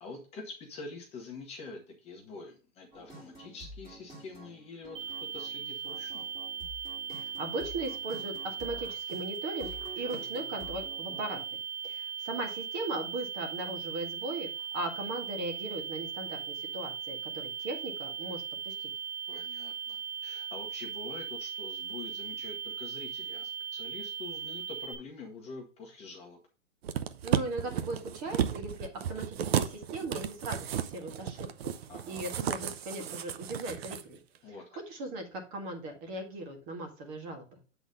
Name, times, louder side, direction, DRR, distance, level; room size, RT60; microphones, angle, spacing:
voice 1, 0.0-6.3 19.3-26.4 31.9-32.4 34.4-34.6, left 3 dB, 15° left, 0 dB, 1.2 m, -46 dB
sound 1, 2.9-11.4, right 1 dB, 10° right, 2.5 m, -49 dB
sound 2, 4.9-24.9, right 8 dB, 85° right, 2.2 m, -38 dB
voice 2, 7.1-9.7 10.0-11.4 11.8-18.9 27.2-31.7 32.0-34.2 34.5-34.6 34.9-37.6, right 2 dB, 30° right, 4 dB, 1.8 m, -38 dB
sound 3, 26.8-34.0 34.4-34.5, right 9 dB, 55° right, 0.8 m, -33 dB
8.0 x 4.0 x 5.2 m, 0.35 s
hypercardioid pair, 155°, 37 cm